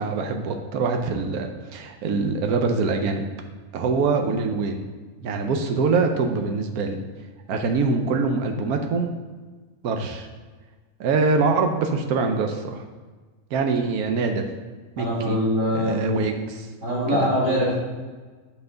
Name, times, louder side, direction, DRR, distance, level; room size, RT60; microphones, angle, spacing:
voice 1, 0.0-3.2 3.7-4.8 5.2-7.0 7.5-9.1 9.8-10.3 11.0-12.8 13.5-14.4 15.0-15.4 15.7-16.7 17.2-17.3, right 4 dB, 80° right, 4 dB, 1.2 m, -24 dB
voice 2, 15.0-16.0 16.8-17.8, equal, 50° right, -7 dB, 3.0 m, -23 dB
8.0 x 5.6 x 3.9 m, 1.4 s
omnidirectional pair, 1.6 m